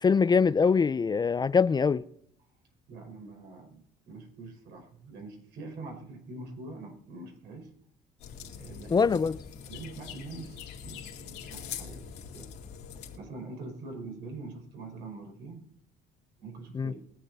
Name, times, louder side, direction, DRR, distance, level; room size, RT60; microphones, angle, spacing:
voice 1, 0.0-2.0 8.9-9.4 16.7-16.9, left 5 dB, 25° left, 0.5 m, -23 dB
voice 2, 2.9-7.7 8.5-9.2 9.7-12.5 13.1-15.6 16.4-17.0, right 3 dB, 80° right, 4.9 m, -44 dB
sound 1, 8.2-13.2, left 7 dB, 80° left, 2.3 m, -43 dB
22.0 x 7.9 x 4.1 m
cardioid pair, 110°, 17 cm